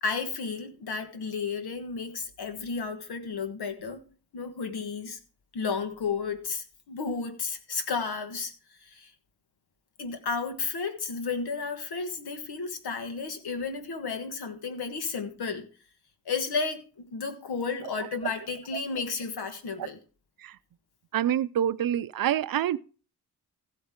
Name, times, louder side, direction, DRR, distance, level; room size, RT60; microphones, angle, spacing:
voice 1, 0.0-5.2 5.5-8.5 8.8-9.1 10.0-15.7 16.2-20.0, left 5 dB, 75° left, 1.6 m, -33 dB
voice 2, 21.1-22.8, right 10 dB, 65° right, 0.5 m, -26 dB
15.0 x 8.0 x 3.6 m
wide cardioid pair, 175°, 38 cm